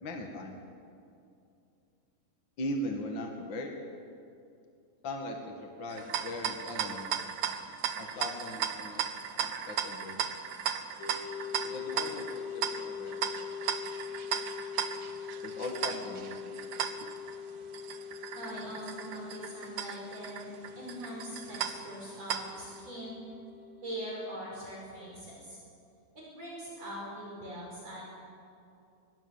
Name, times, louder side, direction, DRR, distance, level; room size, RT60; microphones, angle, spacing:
voice 1, 0.0-0.6 2.6-3.7 5.0-7.1 8.0-9.1 9.3-10.2 11.6-13.5 15.4-16.8, left 1 dB, 40° left, 2 dB, 2.2 m, -39 dB
sound 1, 5.9-22.8, right 8 dB, 65° right, 2.1 m, -36 dB
sound 2, 11.0-24.9, left 7 dB, 85° left, 4.2 m, -43 dB
voice 2, 18.4-20.5 20.8-23.2 23.8-25.6 26.1-28.0, equal, 45° right, -4 dB, 6.2 m, -42 dB
25.0 x 22.5 x 7.2 m, 2.5 s
omnidirectional pair, 4.3 m